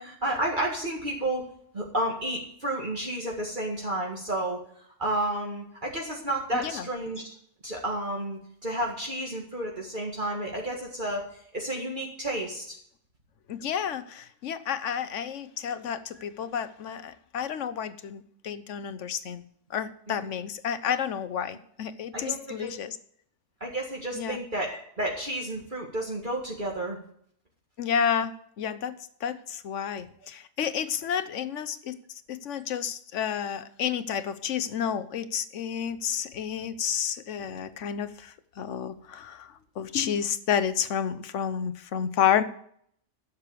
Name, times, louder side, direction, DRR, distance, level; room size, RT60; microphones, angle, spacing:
voice 1, 0.0-1.5 1.7-4.6 5.0-7.3 7.6-11.2 11.5-12.8 20.1-20.3 22.1-22.7 23.6-27.0, right 1 dB, 40° right, -2 dB, 2.0 m, -31 dB
voice 2, 6.5-6.8 13.5-19.4 19.7-23.0 24.1-24.4 27.8-28.9 29.2-32.0 32.3-42.4, left 8 dB, 75° left, 13 dB, 1.2 m, -30 dB
11.5 x 7.3 x 6.7 m, 0.65 s
omnidirectional pair, 1.3 m